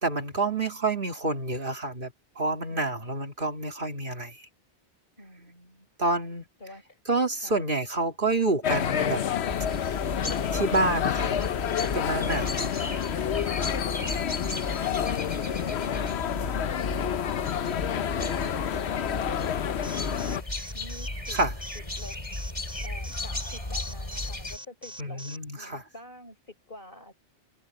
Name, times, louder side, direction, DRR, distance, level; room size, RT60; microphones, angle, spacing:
voice 1, 0.0-4.4 6.0-6.4 7.1-9.2 10.5-11.5 11.9-12.7 21.3-21.5 25.0-25.8, right 2 dB, 50° right, 2.4 m, -28 dB
voice 2, 2.7-3.2 5.2-5.9 6.6-7.0 7.3-7.6 14.6-17.1 20.7-21.4 21.7-22.2 22.7-25.2 25.6-27.1, left 1 dB, 50° left, 5.8 m, -47 dB
sound 1, 8.6-20.4, left 9 dB, 75° left, 1.0 m, -29 dB
sound 2, 9.5-24.6, left 2 dB, 30° left, 2.7 m, -35 dB
Alarm, 19.8-25.4, equal, 5° right, 3.4 m, -43 dB
omnidirectional pair, 1.1 m